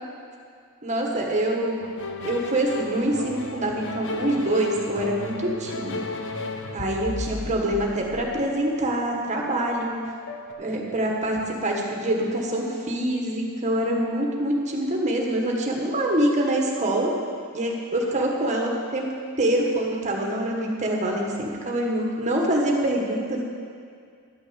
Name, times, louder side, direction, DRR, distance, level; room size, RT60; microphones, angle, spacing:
voice 1, 0.8-1.8 2.2-6.1 6.7-9.9 10.6-17.1 17.5-19.1 19.4-23.4, right 1 dB, 35° right, 0 dB, 1.5 m, -25 dB
sound 1, 1.8-10.5, left 3 dB, 60° left, 0.8 m, -35 dB
12.0 x 6.5 x 6.5 m, 2.2 s
head